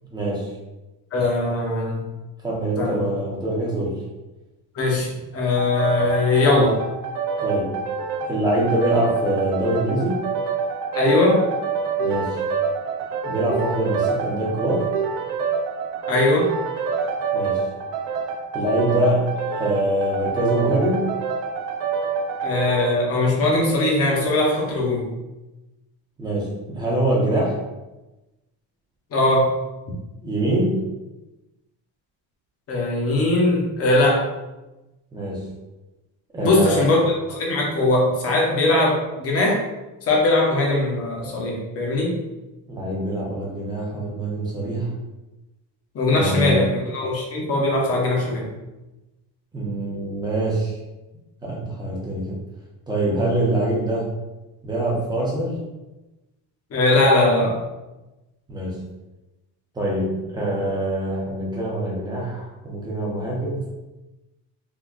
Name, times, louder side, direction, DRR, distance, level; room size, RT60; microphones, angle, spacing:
voice 1, 0.1-0.5 1.5-1.6 2.4-4.0 7.4-7.8 8.3-10.3 12.0-12.4 13.2-14.9 17.3-17.7 18.5-21.1 26.2-27.6 30.2-30.9 35.1-35.5 36.3-36.9 42.7-44.9 46.1-46.7 49.5-50.8 51.4-52.4 52.9-54.1 54.6-55.6 58.5-58.8 59.7-63.7, right 1 dB, 10° right, -5 dB, 0.6 m, -24 dB
voice 2, 1.1-2.0 2.8-3.0 4.7-6.7 10.9-11.5 16.1-16.5 22.4-25.1 29.1-29.5 32.7-34.3 36.4-39.6 40.1-42.2 45.9-48.5 56.7-57.6, left 2 dB, 35° left, -2 dB, 0.7 m, -20 dB
sound 1, 5.6-23.0, right 5 dB, 70° right, 0.6 m, -27 dB
3.7 x 2.2 x 2.4 m, 1.0 s
cardioid pair, 155°, 44 cm